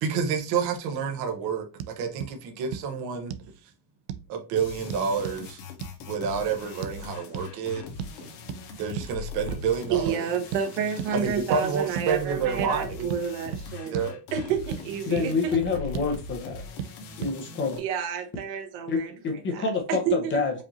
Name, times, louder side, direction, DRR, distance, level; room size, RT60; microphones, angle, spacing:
voice 1, 0.0-3.3 4.3-5.6 6.1-7.8 8.2-8.3 8.8-10.3 11.2-13.1 13.8-14.2, right 6 dB, 50° right, 0.9 m, -29 dB
sound 1, 1.8-1.9 2.2-2.3 2.7-2.9 3.3-3.5 4.1-4.3 4.9-5.4 5.8-6.0 6.8-7.0 7.3-7.5 8.0-8.2 8.5-8.6 9.0-9.1 9.5-9.7 10.1-10.2 10.5-10.7 11.0-11.1 11.5-11.6 12.0-12.1 12.6-12.7 13.1-13.2 13.5-13.7 13.9-14.1 14.4-14.8 15.2-15.3 15.7-16.1 16.8-16.9 17.2-17.4, right 9 dB, 90° right, 0.6 m, -34 dB
sound 2, 4.6-17.8, left 4 dB, 65° left, 1.2 m, -41 dB
voice 2, 9.9-13.9 14.3-15.6 17.8-19.1 19.5-20.3, right 8 dB, 70° right, 1.3 m, -30 dB
voice 3, 15.1-16.6 17.2-17.8 18.9-20.5, left 4 dB, 25° left, 0.9 m, -27 dB
5.1 x 2.7 x 2.8 m
cardioid pair, 150°, 49 cm